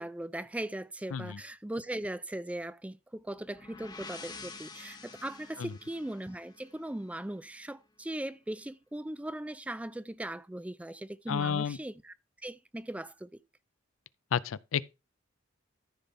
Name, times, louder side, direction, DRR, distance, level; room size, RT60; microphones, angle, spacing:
voice 1, 0.0-12.1 12.4-13.4, right 1 dB, 5° right, 0.4 m, -39 dB
sound 1, 3.3-7.1, left 4 dB, 20° left, 0.9 m, -48 dB
voice 2, 11.3-11.8 14.3-14.8, left 7 dB, 85° left, 0.4 m, -31 dB
14.0 x 5.4 x 3.4 m
head